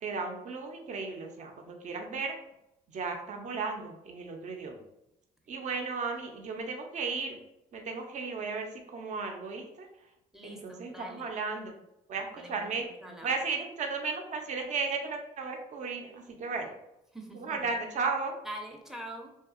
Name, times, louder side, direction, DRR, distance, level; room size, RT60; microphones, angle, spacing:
voice 1, 0.0-2.4 2.9-4.8 5.5-7.4 7.7-9.9 10.4-11.8 12.1-12.9 13.2-16.7 17.3-18.4, right 4 dB, 45° right, 3 dB, 0.6 m, -35 dB
voice 2, 10.3-11.3 12.4-13.3 17.1-17.7 18.4-19.3, right 1 dB, 5° right, 1 dB, 0.6 m, -44 dB
2.7 x 2.3 x 2.4 m, 0.86 s
supercardioid pair, 75°, 16 cm